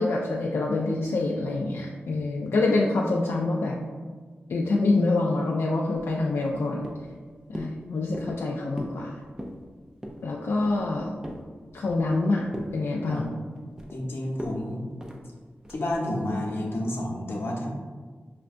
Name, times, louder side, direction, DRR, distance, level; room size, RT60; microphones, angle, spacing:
voice 1, 0.0-3.8 4.5-6.9 7.5-9.1 10.2-11.1 11.7-12.5 12.7-13.3, left 2 dB, 85° left, -2 dB, 0.3 m, -26 dB
sound 1, 5.9-6.6 6.8-7.2 7.5-7.8 8.1-8.4 8.8-9.0 9.3-9.6 10.0-10.2 10.6-11.5 11.9-12.2 12.5-12.7 13.1-14.0 14.4-14.6 15.0-15.2 15.6-15.9, equal, 15° right, 0.4 m, -38 dB
voice 2, 13.9-14.8 15.7-17.7, left 1 dB, 70° left, -3 dB, 0.8 m, -30 dB
5.6 x 2.2 x 2.5 m, 1.5 s
wide cardioid pair, 110°, 4 cm